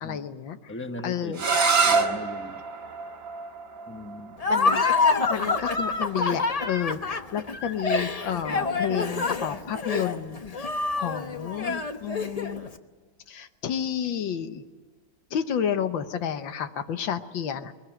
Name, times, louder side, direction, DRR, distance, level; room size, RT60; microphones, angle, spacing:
voice 1, 0.0-0.6 1.0-1.4 4.5-12.7 13.3-14.6 15.3-17.7, left 9 dB, 70° left, 10 dB, 1.7 m, -31 dB
voice 2, 0.7-1.6 1.8-2.6 3.9-4.4, left 1 dB, 10° left, 7 dB, 0.7 m, -39 dB
sound 1, 1.3-7.1, right 4 dB, 45° right, 1.8 m, -28 dB
Laughter, 4.4-12.7, left 3 dB, 40° left, 0.5 m, -26 dB
21.5 x 20.0 x 9.0 m, 1.4 s
omnidirectional pair, 2.2 m